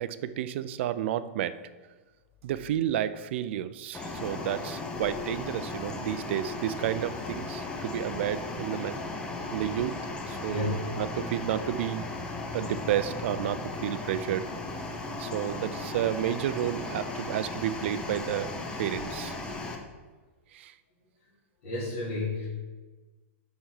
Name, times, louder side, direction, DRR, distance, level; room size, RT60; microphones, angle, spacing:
voice 1, 0.0-1.6 2.4-9.0 9.5-10.0 10.3-12.1 12.5-14.4 15.2-18.5 18.8-19.4 20.5-20.7, right 11 dB, 55° right, 13 dB, 0.4 m, -31 dB
sound 1, 3.9-19.8, left 3 dB, 10° left, 0.6 m, -36 dB
voice 2, 21.6-22.5, left 2 dB, 50° left, -9 dB, 2.7 m, -31 dB
9.2 x 4.2 x 4.9 m, 1.3 s
supercardioid pair, 165°, 8 cm